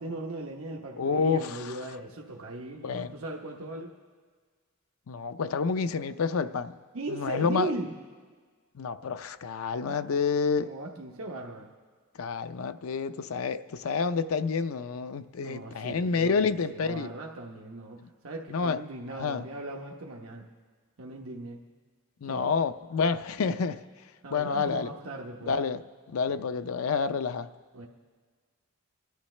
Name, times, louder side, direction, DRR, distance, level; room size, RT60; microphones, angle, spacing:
voice 1, 0.0-3.9 6.9-7.9 9.8-10.0 10.6-11.7 15.4-18.0 18.2-20.5 21.0-21.6 22.2-22.5 24.2-25.6 26.3-26.4 27.7-27.9, right 2 dB, 80° right, 1.0 m, -38 dB
voice 2, 1.0-1.7 2.8-3.1 5.1-6.8 7.1-7.7 8.7-10.7 12.2-17.1 18.5-18.8 19.1-19.4 22.2-23.8 24.3-24.9 25.5-27.5, left 5 dB, 85° left, 0.5 m, -29 dB
25.5 x 11.5 x 3.2 m
head